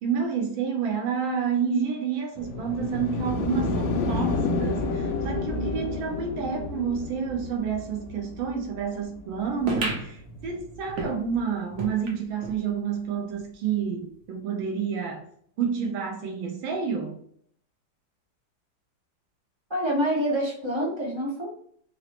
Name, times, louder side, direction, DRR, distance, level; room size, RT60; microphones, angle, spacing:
voice 1, 0.0-15.2 15.6-17.2, right 6 dB, 90° right, 1.6 m, -29 dB
sound 1, 2.4-9.7 10.7-10.8, left 3 dB, 85° left, 1.4 m, -30 dB
sound 2, 9.7-12.6 13.1-13.2 13.4-13.5 14.2-14.3, right 2 dB, 65° right, 0.8 m, -34 dB
voice 2, 19.7-21.5, equal, 40° right, 0.4 m, -26 dB
4.4 x 2.0 x 2.8 m
omnidirectional pair, 2.1 m